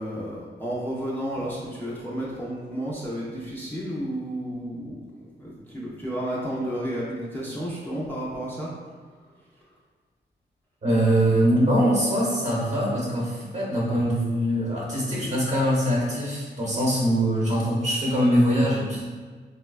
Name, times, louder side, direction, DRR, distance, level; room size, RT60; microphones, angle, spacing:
voice 1, 0.0-8.7, equal, 10° left, -7 dB, 0.4 m, -32 dB
voice 2, 10.8-19.0, equal, 40° right, -5 dB, 0.9 m, -23 dB
3.8 x 2.2 x 2.3 m, 1.5 s
wide cardioid pair, 135°, 18 cm